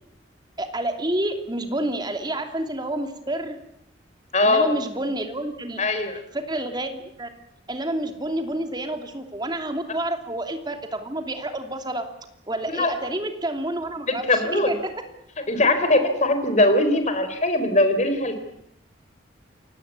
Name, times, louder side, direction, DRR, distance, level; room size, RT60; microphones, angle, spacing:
voice 1, 0.6-3.6 4.4-5.8 6.3-7.3 7.7-12.1 12.5-14.9, right 1 dB, 20° right, 6 dB, 2.8 m, -29 dB
voice 2, 4.3-4.7 5.8-6.2 12.7-12.9 14.1-14.7 15.5-18.4, left 2 dB, 40° left, 9 dB, 4.1 m, -21 dB
29.0 x 17.5 x 8.4 m, 0.78 s
head